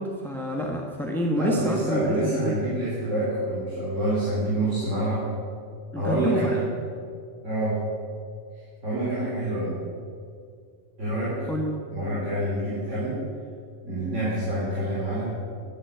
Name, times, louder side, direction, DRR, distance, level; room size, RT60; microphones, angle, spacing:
voice 1, 0.0-2.6 5.9-6.6 11.5-11.7, equal, ahead, 0 dB, 1.2 m, -27 dB
voice 2, 1.3-5.2 6.0-6.6 7.4-7.8 8.8-9.7 11.0-11.3 11.9-13.2 13.8-15.3, right 1 dB, 90° right, -9 dB, 4.3 m, -27 dB
13.0 x 9.9 x 8.3 m, 2.2 s
omnidirectional pair, 1.2 m